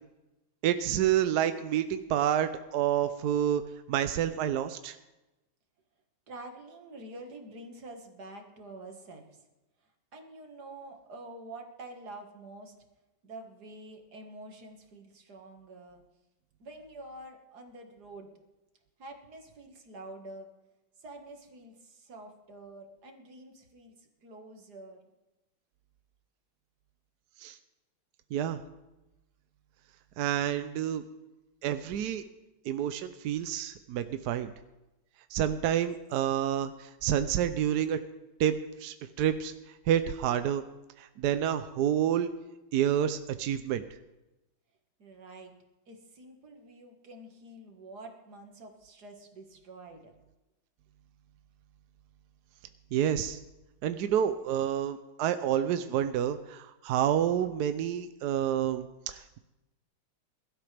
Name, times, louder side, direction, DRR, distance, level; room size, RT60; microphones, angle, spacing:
voice 1, 0.6-3.6 3.9-5.0 27.4-27.6 28.3-28.6 30.2-31.0 31.6-32.2 32.7-34.5 35.3-38.0 38.4-38.5 38.8-39.5 39.9-40.6 41.0-42.3 42.7-43.8 52.9-53.4 53.8-59.4, right 10 dB, 70° right, 10 dB, 1.0 m, -28 dB
voice 2, 6.3-9.4 10.1-12.7 13.2-16.0 16.6-18.3 19.0-20.5 21.0-25.0 35.7-35.9 45.0-45.5 45.9-50.1, right 2 dB, 50° right, 3 dB, 2.2 m, -47 dB
22.0 x 12.5 x 3.4 m, 1.0 s
omnidirectional pair, 2.2 m